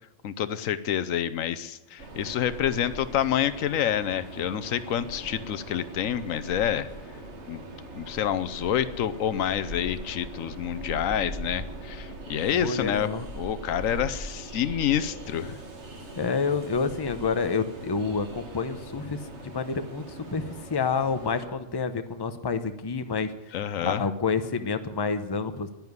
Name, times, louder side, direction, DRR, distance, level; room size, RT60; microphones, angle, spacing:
voice 1, 0.2-6.9 7.5-7.6 8.0-13.1 13.4-15.6 23.5-24.0, left 10 dB, 85° left, 14 dB, 1.1 m, -28 dB
Train, 2.0-21.5, right 1 dB, 60° right, 2.1 m, -41 dB
voice 2, 12.5-13.3 16.2-23.3 23.8-25.7, left 5 dB, 20° left, 10 dB, 0.7 m, -28 dB
11.0 x 10.5 x 9.5 m, 1.0 s
omnidirectional pair, 1.3 m